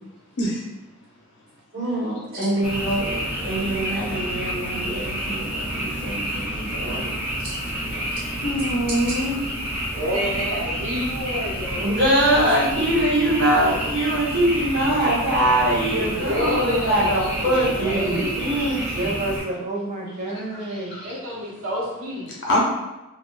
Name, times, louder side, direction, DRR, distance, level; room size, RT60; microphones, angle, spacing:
voice 1, 1.7-7.0 11.8-19.2, right 1 dB, 50° right, -8 dB, 1.4 m, -23 dB
Frog, 2.6-19.4, right 1 dB, 5° right, 1.0 m, -29 dB
voice 2, 6.8-7.1 7.8-8.1 16.3-16.5 17.8-18.3 19.0-20.9, right 2 dB, 35° right, -2 dB, 0.5 m, -30 dB
voice 3, 8.4-9.4 22.3-22.6, left 1 dB, 55° left, -3 dB, 0.6 m, -23 dB
voice 4, 9.9-11.9 16.0-18.6 21.0-22.3, left 1 dB, 70° right, -7 dB, 1.2 m, -28 dB
3.5 x 2.5 x 2.4 m, 1.0 s
head